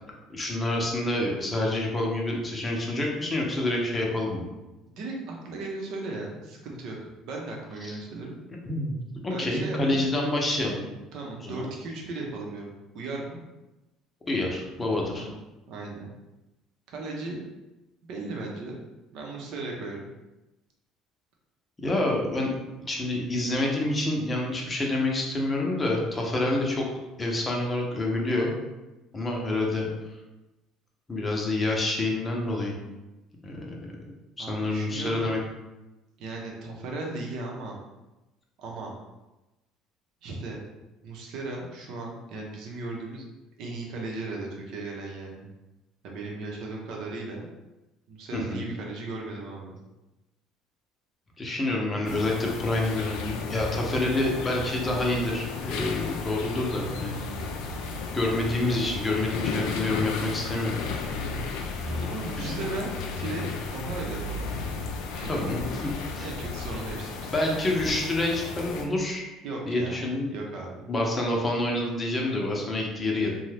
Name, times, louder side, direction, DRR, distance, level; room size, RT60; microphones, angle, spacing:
voice 1, 0.3-4.4 7.8-7.9 8.6-9.0 9.2-10.8 11.4-11.7 14.3-15.3 21.8-22.5 22.9-26.8 27.2-28.5 29.1-29.9 31.1-32.7 33.4-34.0 34.4-35.4 48.3-48.6 51.4-57.2 58.1-60.8 62.4-62.6 65.3-65.6 66.1-66.3 67.3-69.3 69.7-70.3 70.9-73.3, left 2 dB, 25° left, -1 dB, 0.7 m, -27 dB
voice 2, 4.9-8.3 9.2-10.1 11.1-13.4 15.2-15.4 15.7-16.1 16.9-17.4 18.0-18.8 19.1-20.0 34.4-35.3 36.2-37.8 38.6-39.0 40.2-40.6 41.0-43.2 43.6-45.5 46.0-47.5 48.1-49.8 61.9-63.5 63.7-64.5 65.1-65.5 66.2-67.3 69.4-70.0 70.3-70.9, right 2 dB, 65° right, -1 dB, 0.8 m, -36 dB
sound 1, 52.0-68.8, left 4 dB, 80° left, 0.4 m, -34 dB
2.7 x 2.2 x 3.3 m, 1.0 s
supercardioid pair, 95°, 0 cm